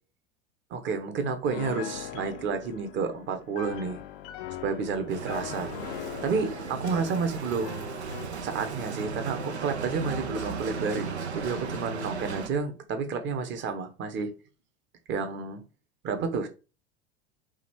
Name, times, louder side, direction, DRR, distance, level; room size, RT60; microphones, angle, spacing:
voice 1, 0.7-4.0 4.6-5.7 6.2-7.9 8.4-14.3 15.1-15.6 16.0-16.5, right 5 dB, 35° right, 1.0 m, -30 dB
Piano, 1.5-8.4, left 11 dB, 55° left, 0.6 m, -41 dB
Bicycle, 5.1-12.5, right 5 dB, 80° right, 0.7 m, -36 dB
4.9 x 2.5 x 3.5 m
figure-of-eight pair, 80°, 33 cm